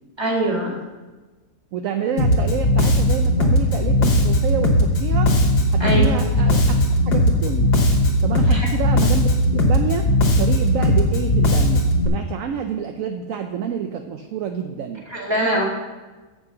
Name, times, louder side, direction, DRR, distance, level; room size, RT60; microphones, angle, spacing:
voice 1, 0.2-0.8 5.8-6.0 8.5-8.7 15.1-15.6, right 1 dB, 15° right, -3 dB, 1.8 m, -22 dB
voice 2, 1.7-5.3 5.7-6.8 7.1-7.7 8.2-10.1 10.4-15.0, right 7 dB, 65° right, 6 dB, 0.9 m, -28 dB
Bass guitar, 2.2-12.1, left 1 dB, 80° left, 1.8 m, -18 dB
7.8 x 5.7 x 6.7 m, 1.2 s
omnidirectional pair, 1.7 m